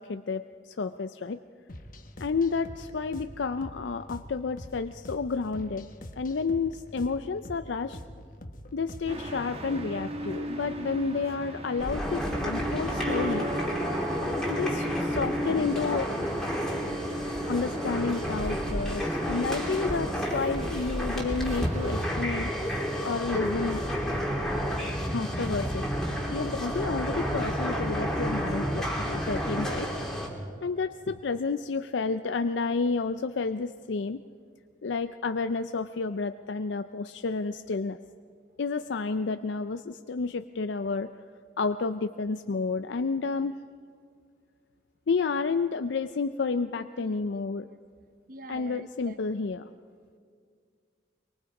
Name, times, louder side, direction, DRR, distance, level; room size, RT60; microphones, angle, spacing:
voice 1, 0.0-1.4 2.2-5.9 6.2-8.0 8.7-13.5 14.5-16.1 17.5-22.5 23.0-23.9 25.1-25.9 26.3-29.9 30.6-34.2 34.8-38.0 38.6-41.1 41.6-43.6 45.1-47.7 48.5-49.7, left 4 dB, 75° left, 10 dB, 0.5 m, -30 dB
sound 1, 1.7-9.4, left 1 dB, 45° left, 1.2 m, -45 dB
sound 2, 9.1-21.9, equal, 30° right, 1.7 m, -37 dB
sound 3, 11.8-30.3, equal, 5° left, 2.7 m, -30 dB
voice 2, 48.3-49.2, right 2 dB, 45° right, 11 dB, 0.8 m, -45 dB
24.0 x 23.0 x 4.9 m, 2.1 s
head